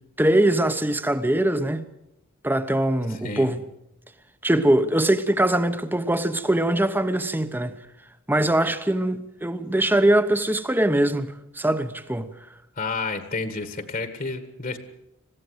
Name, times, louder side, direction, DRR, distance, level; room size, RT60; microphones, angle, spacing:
voice 1, 0.2-1.8 2.4-3.6 4.4-7.7 8.3-12.3, right 1 dB, 10° right, 0.9 m, -22 dB
voice 2, 3.1-3.5 12.8-14.8, left 4 dB, 40° left, 1.6 m, -30 dB
21.0 x 16.0 x 8.0 m
head